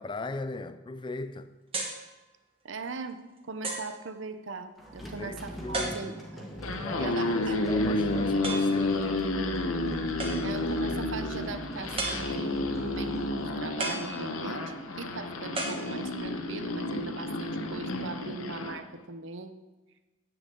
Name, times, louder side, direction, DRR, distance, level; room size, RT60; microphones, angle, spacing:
voice 1, 0.0-1.5 5.0-6.2 6.8-9.2, left 2 dB, 25° left, 0.3 m, -38 dB
sound 1, 1.7-2.1 2.8-2.9 3.6-4.0 5.7-6.4 8.4-8.9 10.2-10.7 12.0-12.7 13.8-14.7 15.6-16.4, right 3 dB, 25° right, 1.2 m, -35 dB
voice 2, 2.6-6.5 7.0-7.6 10.4-19.5, right 4 dB, 65° right, 0.7 m, -40 dB
sound 2, 4.8-14.2, equal, ahead, 1.4 m, -41 dB
sound 3, 6.5-18.8, left 2 dB, 90° left, 0.9 m, -31 dB
9.9 x 8.6 x 3.8 m
head